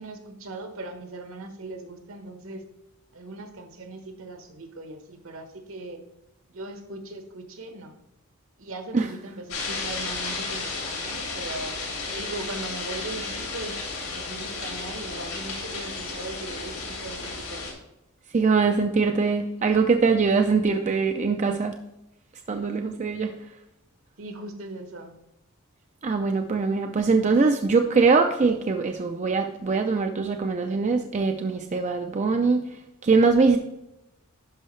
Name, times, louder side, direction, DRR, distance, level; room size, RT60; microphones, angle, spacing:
voice 1, 0.0-2.6 3.1-6.0 6.5-8.0 8.6-11.8 12.1-17.7 24.2-25.1, right 2 dB, 65° right, 7 dB, 1.1 m, -39 dB
sound 1, 9.5-17.7, left 3 dB, 80° left, 2.7 m, -33 dB
voice 2, 18.3-21.8 22.5-23.4 26.0-32.6 33.0-33.6, right 4 dB, 35° right, 5 dB, 0.4 m, -22 dB
11.0 x 5.6 x 3.2 m, 0.90 s
head